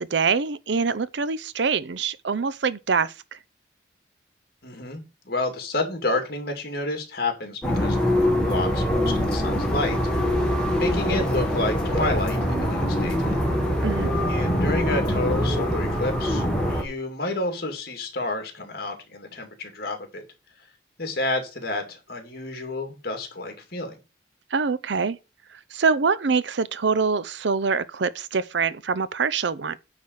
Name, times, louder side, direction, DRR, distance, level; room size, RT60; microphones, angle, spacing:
voice 1, 0.0-3.1 13.8-14.1 24.5-25.2 25.7-29.8, right 5 dB, 70° right, 0.6 m, -24 dB
voice 2, 4.6-10.0 10.8-13.4 14.3-20.2 21.0-24.0, left 2 dB, 50° left, 2.5 m, -30 dB
sound 1, 7.6-16.8, equal, 5° left, 1.8 m, -23 dB
9.5 x 4.1 x 6.4 m
head